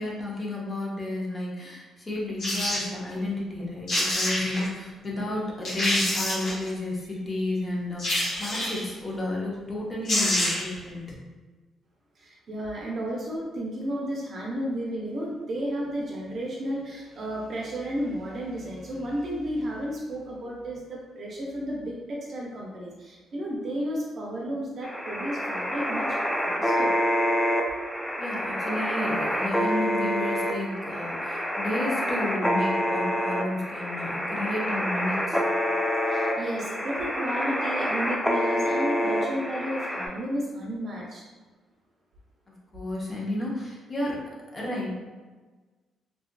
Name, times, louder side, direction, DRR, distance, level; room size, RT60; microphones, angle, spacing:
voice 1, 0.0-11.1 28.2-35.4 42.7-44.2 44.5-45.0, left 1 dB, 30° left, -4 dB, 0.7 m, -32 dB
sound 1, 2.4-2.9 3.6-3.7 3.9-4.7 5.2-5.3 5.6-6.7 8.0-8.9 9.7-9.8 10.0-10.8 11.1-11.2, left 1 dB, 65° left, 1.1 m, -27 dB
voice 2, 12.2-26.2 26.4-26.9 36.1-41.2, equal, 50° right, -3 dB, 0.6 m, -32 dB
sound 2, 24.8-40.1, equal, 5° left, 0.3 m, -27 dB
2.7 x 2.3 x 2.2 m, 1.3 s
cardioid pair, 90°, 0 cm